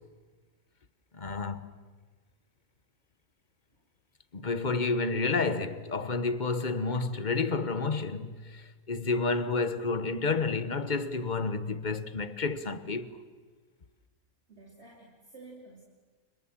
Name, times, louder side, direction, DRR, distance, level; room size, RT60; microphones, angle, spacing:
voice 1, 1.1-1.7 4.3-13.1, left 4 dB, 35° left, 1.2 m, -30 dB
voice 2, 14.5-15.8, right 2 dB, 50° right, 3.4 m, -51 dB
30.0 x 26.5 x 7.4 m
omnidirectional pair, 1.4 m